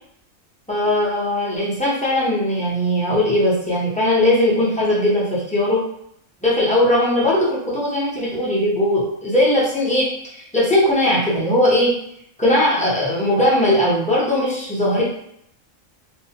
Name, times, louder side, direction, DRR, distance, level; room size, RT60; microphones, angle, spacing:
voice 1, 0.7-5.8 6.4-10.1 10.3-11.9 12.4-15.0, left 1 dB, 10° left, -8 dB, 0.4 m, -19 dB
2.6 x 2.1 x 2.7 m, 0.73 s
omnidirectional pair, 1.4 m